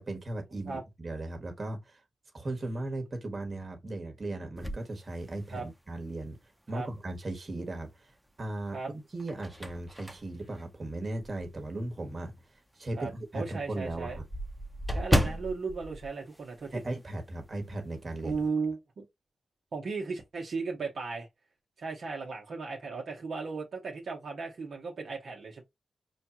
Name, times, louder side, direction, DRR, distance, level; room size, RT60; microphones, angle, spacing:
voice 1, 0.0-2.0 2.3-6.4 6.7-8.1 8.4-12.4 12.8-14.2 16.7-18.4, right 2 dB, 45° right, 1.3 m, -37 dB
sound 1, 4.6-5.9 6.4-6.5 8.0-8.5 9.0-11.6 12.1-12.2 12.6-12.7 13.0-13.1 13.3-17.1 17.3-17.6 17.9-18.5, equal, ahead, 0.8 m, -34 dB
voice 2, 13.0-14.2 14.9-16.8 18.2-19.0 19.7-21.3 21.8-25.6, right 4 dB, 70° right, 1.0 m, -36 dB
5.0 x 2.3 x 2.8 m
supercardioid pair, 40°, 0 cm